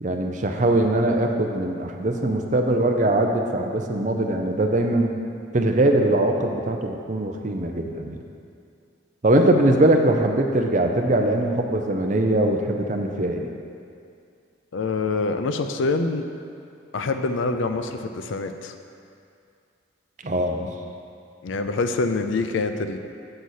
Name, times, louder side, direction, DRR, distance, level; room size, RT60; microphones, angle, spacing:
voice 1, 0.0-5.1 5.5-8.2 9.2-13.5 20.2-20.7, right 1 dB, 40° right, 3 dB, 0.5 m, -21 dB
voice 2, 14.7-16.3 16.9-18.7 21.4-23.0, left 3 dB, 70° left, 8 dB, 0.4 m, -25 dB
7.7 x 4.1 x 6.4 m, 2.4 s
head